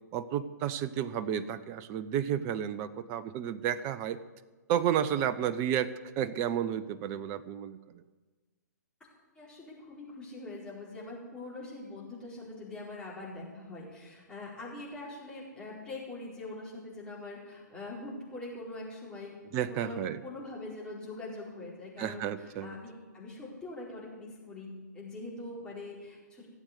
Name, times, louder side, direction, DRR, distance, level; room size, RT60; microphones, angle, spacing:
voice 1, 0.1-4.2 4.7-7.8 19.5-20.2 22.0-22.8, right 9 dB, 25° right, 14 dB, 0.7 m, -31 dB
voice 2, 9.3-19.3 19.7-26.5, left 2 dB, 10° left, -6 dB, 4.6 m, -43 dB
16.0 x 8.0 x 8.2 m, 1.3 s
figure-of-eight pair, 120°, 10 cm